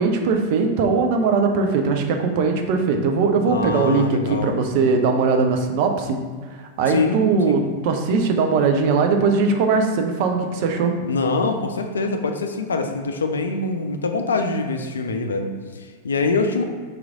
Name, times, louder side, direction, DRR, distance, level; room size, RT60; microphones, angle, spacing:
voice 1, 0.0-6.2 6.8-10.9, right 4 dB, 50° right, 4 dB, 0.5 m, -20 dB
voice 2, 3.5-5.0 6.9-7.6 11.0-16.6, left 3 dB, 70° left, 6 dB, 0.4 m, -24 dB
4.8 x 3.1 x 3.6 m, 1.6 s
figure-of-eight pair, 90°, 0 cm